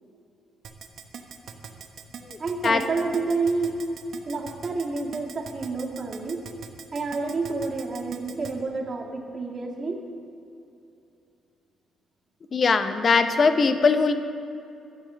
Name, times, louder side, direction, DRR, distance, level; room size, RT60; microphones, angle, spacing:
Keyboard (musical), 0.6-8.5, right 7 dB, 70° right, 0.9 m, -41 dB
voice 1, 2.4-3.9 4.3-6.5 6.9-10.1, right 3 dB, 40° right, -1 dB, 1.8 m, -29 dB
voice 2, 12.5-14.1, left 4 dB, 45° left, 9 dB, 0.8 m, -20 dB
10.5 x 7.2 x 6.7 m, 2.7 s
cardioid pair, 90°, 0 cm